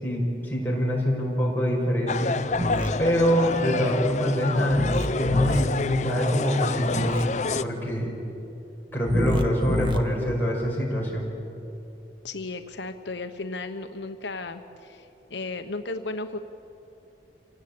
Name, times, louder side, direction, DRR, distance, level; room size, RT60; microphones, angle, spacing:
voice 1, 0.0-2.4 3.0-7.2 7.6-8.1 8.9-11.3, equal, 10° left, -3 dB, 5.4 m, -25 dB
sound 1, 2.1-7.6, left 4 dB, 40° left, 0.6 m, -29 dB
sound 2, 2.5-2.9 4.7-5.6 6.9-7.2 9.0-10.0, equal, 25° right, 1.5 m, -27 dB
voice 2, 12.2-16.4, left 3 dB, 80° left, 7 dB, 1.1 m, -35 dB
27.5 x 17.5 x 8.6 m, 2.9 s
head